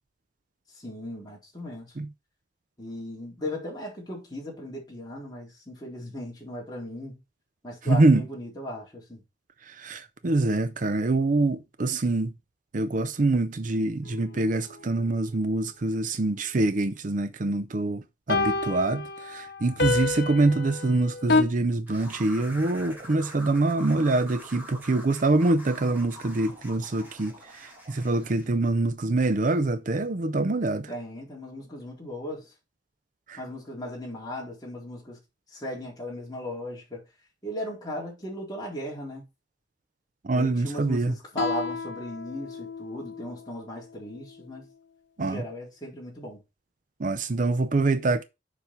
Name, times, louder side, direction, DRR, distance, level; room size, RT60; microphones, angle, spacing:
voice 1, 0.7-1.9 2.8-7.2 7.6-9.2 30.9-32.5 33.4-35.2 35.5-37.0 37.4-39.2 40.3-44.7 45.2-46.4, left 1 dB, 20° left, 3.9 m, -37 dB
voice 2, 7.9-8.2 9.8-12.3 12.7-18.0 18.3-30.9 33.3-33.4 40.2-41.1 45.2-45.4 47.0-48.2, right 2 dB, 45° right, 0.6 m, -25 dB
sound 1, 14.1-14.2 18.3-21.4, left 3 dB, 60° left, 1.4 m, -27 dB
sound 2, 21.9-28.5, equal, 10° right, 3.1 m, -45 dB
Guitar, 41.3-44.6, left 4 dB, 85° left, 0.9 m, -36 dB
7.2 x 5.4 x 4.6 m
head